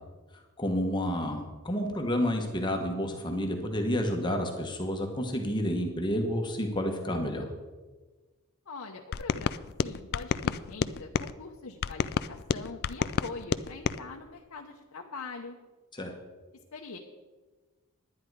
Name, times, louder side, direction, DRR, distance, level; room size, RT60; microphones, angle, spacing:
voice 1, 0.6-7.5 15.9-16.1, equal, 20° left, 2 dB, 1.2 m, -30 dB
voice 2, 8.7-15.6 16.7-17.0, left 4 dB, 75° left, 0 dB, 0.8 m, -43 dB
sound 1, 9.1-11.3 11.8-14.0, left 6 dB, 45° left, 0.3 m, -30 dB
10.5 x 10.5 x 4.7 m, 1.3 s
head